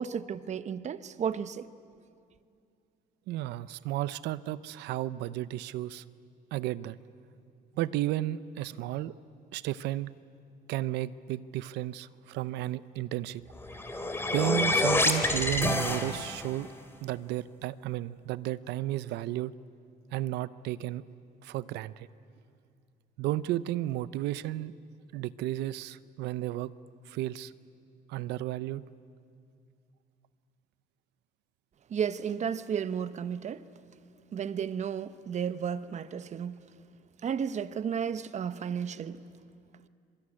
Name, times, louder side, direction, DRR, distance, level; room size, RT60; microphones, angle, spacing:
voice 1, 0.0-1.6 31.9-33.6 34.3-36.6 37.2-39.2, right 7 dB, 45° right, 1.0 m, -33 dB
voice 2, 3.3-6.0 6.5-7.0 7.7-9.1 9.5-10.1 10.7-13.4 14.3-16.7 17.0-19.5 20.1-21.0 21.4-22.1 23.2-24.7 25.1-26.7 27.1-27.5 28.1-28.8, right 15 dB, 85° right, 0.7 m, -33 dB
sound 1, 13.5-16.6, left 2 dB, 15° left, 2.6 m, -28 dB
26.5 x 22.5 x 10.0 m
cardioid pair, 110°, 17 cm